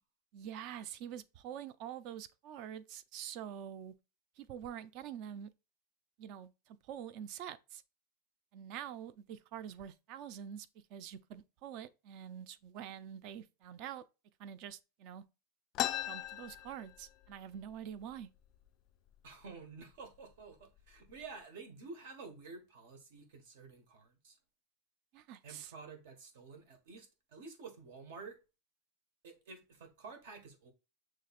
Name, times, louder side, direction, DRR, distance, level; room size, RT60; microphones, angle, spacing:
voice 1, 0.3-3.9 4.4-5.5 6.2-7.8 8.5-14.0 14.4-15.2 16.1-18.3 25.1-25.7, right 9 dB, 40° right, 0.4 m, -46 dB
sound 1, 15.7-17.4 17.7-17.8 18.1-18.7 19.3-19.4 20.1-20.3 20.8-21.2, left 14 dB, 30° left, 0.3 m, -38 dB
voice 2, 19.2-24.4 25.4-28.4 29.2-30.7, right 4 dB, 65° right, 1.5 m, -51 dB
6.5 x 3.2 x 2.4 m
supercardioid pair, 175°, 0 cm